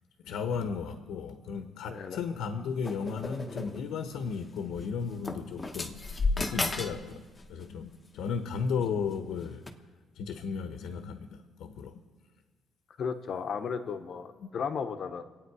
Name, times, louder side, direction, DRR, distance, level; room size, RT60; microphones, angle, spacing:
voice 1, 0.2-6.1 6.4-9.6 10.1-12.0 14.4-14.5, left 6 dB, 75° left, 7 dB, 1.0 m, -35 dB
sound 1, 2.8-3.8 4.7-4.9 5.2-7.0 7.3-7.7 8.5-8.8 9.6-9.7, left 3 dB, 20° left, 0.9 m, -33 dB
voice 2, 13.0-15.2, left 6 dB, 45° left, 9 dB, 0.9 m, -34 dB
26.0 x 9.0 x 4.8 m, 1.4 s
cardioid pair, 155°, 0 cm